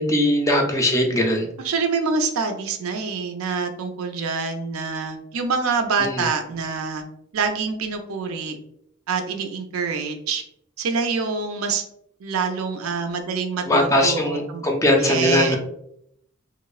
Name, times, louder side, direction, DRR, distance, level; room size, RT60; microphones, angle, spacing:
voice 1, 0.0-1.5 6.0-6.3 13.7-15.6, left 1 dB, 15° left, 2 dB, 0.3 m, -20 dB
voice 2, 1.6-7.0 7.3-8.6 9.1-10.4 10.8-11.8 12.2-14.6 15.0-15.6, right 5 dB, 85° right, 6 dB, 0.4 m, -26 dB
2.9 x 2.0 x 2.3 m, 0.73 s
head